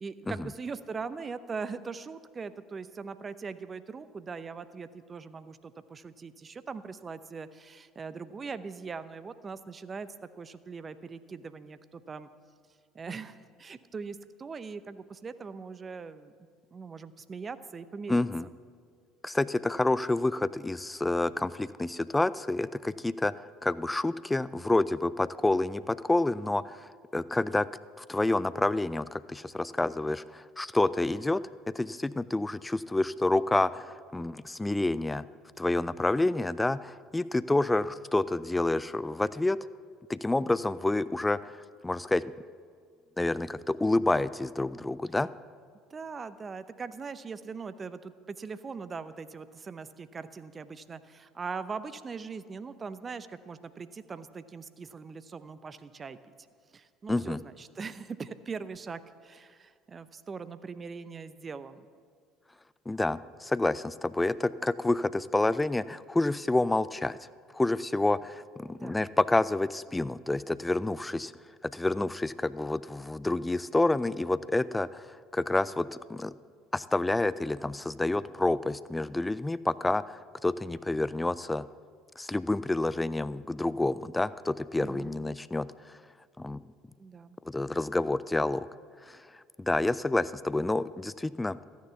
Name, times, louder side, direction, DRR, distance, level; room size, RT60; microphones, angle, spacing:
voice 1, 0.0-12.3 12.9-16.3 16.7-18.2 45.9-56.2 56.7-61.9 68.8-69.0 84.7-85.2 87.0-87.4, right 5 dB, 30° right, 13 dB, 0.7 m, -41 dB
voice 2, 18.1-18.5 19.2-23.3 23.6-27.7 28.0-31.4 31.7-35.3 35.6-39.6 40.1-42.3 43.2-45.3 57.1-57.4 62.9-67.2 67.5-71.3 71.6-76.3 76.7-81.7 82.2-86.0 86.4-86.6 87.5-88.7 89.0-89.3 89.6-91.6, left 2 dB, 15° left, 17 dB, 0.4 m, -28 dB
14.0 x 10.5 x 6.9 m, 2.1 s
hypercardioid pair, 65°, 0 cm